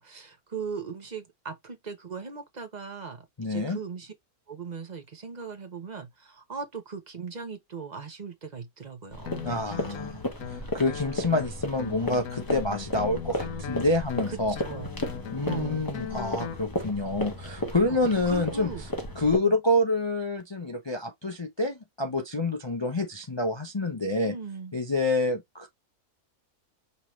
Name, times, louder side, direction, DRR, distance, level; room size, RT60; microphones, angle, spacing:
voice 1, 0.0-4.1 4.5-10.2 14.3-14.4 14.6-14.9 15.4-15.9 17.9-18.0 18.3-18.9 19.4-19.6 24.2-24.7, right 5 dB, 35° right, 0.9 m, -39 dB
voice 2, 3.4-3.8 9.5-14.6 15.3-18.7 19.2-24.4 24.7-25.7, left 2 dB, 45° left, 0.3 m, -27 dB
sound 1, 9.1-19.4, left 1 dB, 20° left, 0.7 m, -35 dB
Guitar, 9.2-16.6, left 8 dB, 65° left, 1.0 m, -39 dB
5.6 x 3.0 x 3.1 m
omnidirectional pair, 1.6 m